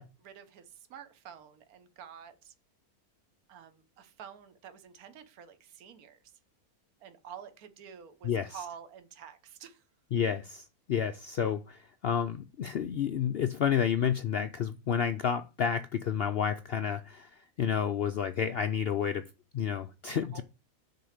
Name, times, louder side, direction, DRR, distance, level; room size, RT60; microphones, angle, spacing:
voice 1, 0.0-2.5 3.5-6.3 7.0-9.8 20.1-20.4, right 8 dB, 70° right, 1.4 m, -49 dB
voice 2, 8.2-8.6 10.1-19.3 19.5-20.4, left 8 dB, 85° left, 0.5 m, -30 dB
6.7 x 4.1 x 6.5 m
omnidirectional pair, 1.6 m